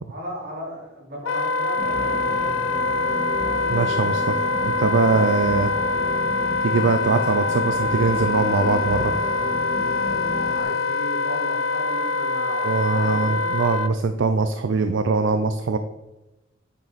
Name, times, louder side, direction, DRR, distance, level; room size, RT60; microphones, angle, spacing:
voice 1, 0.1-2.5 10.5-13.5, equal, 50° right, -4 dB, 3.5 m, -36 dB
Wind instrument woodwind instrument, 1.2-13.9, left 3 dB, 85° left, 0.5 m, -24 dB
sound 1, 1.8-10.6, equal, 15° left, 3.0 m, -33 dB
voice 2, 3.7-5.7 6.6-9.1 12.6-15.8, right 4 dB, 70° right, 9 dB, 0.5 m, -22 dB
9.0 x 6.8 x 4.1 m, 1.0 s
head